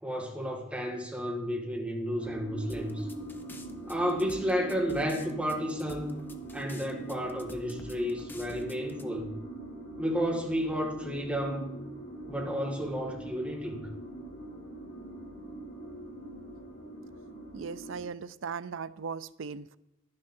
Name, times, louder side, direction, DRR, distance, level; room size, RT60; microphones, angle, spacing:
voice 1, 0.0-3.1 3.9-6.2 6.5-9.3 10.0-11.8 12.3-13.9, equal, 5° right, -1 dB, 2.0 m, -32 dB
sound 1, 2.2-18.0, right 1 dB, 70° left, 1.9 m, -43 dB
sound 2, 2.7-9.0, left 1 dB, 10° left, 0.6 m, -49 dB
voice 2, 17.5-19.8, right 5 dB, 80° right, 15 dB, 0.5 m, -38 dB
11.0 x 9.7 x 4.4 m, 0.90 s
head